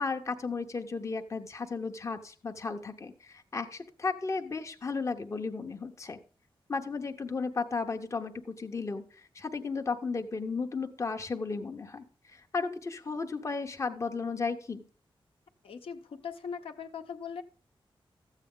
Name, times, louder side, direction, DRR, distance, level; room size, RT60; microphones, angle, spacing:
voice 1, 0.0-6.2 6.7-14.8, left 4 dB, 30° left, 5 dB, 0.8 m, -34 dB
voice 2, 15.6-17.4, left 6 dB, 80° left, 6 dB, 0.9 m, -40 dB
13.5 x 8.2 x 3.7 m, 0.40 s
wide cardioid pair, 150°, 9 cm